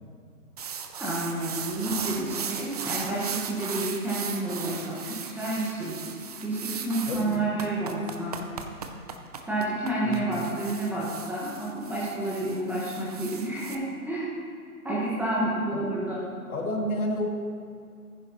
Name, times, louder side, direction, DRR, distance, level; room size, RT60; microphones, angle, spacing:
sound 1, 0.6-13.7, right 6 dB, 25° right, 0.5 m, -37 dB
voice 1, 1.0-8.4 9.5-14.3 14.8-16.2, right 1 dB, 5° right, -7 dB, 1.3 m, -30 dB
voice 2, 7.1-7.4 10.0-10.3 15.7-15.9 16.5-17.3, left 1 dB, 65° left, -1 dB, 2.6 m, -30 dB
14.5 x 10.0 x 3.0 m, 2.4 s
figure-of-eight pair, 135°, 45 cm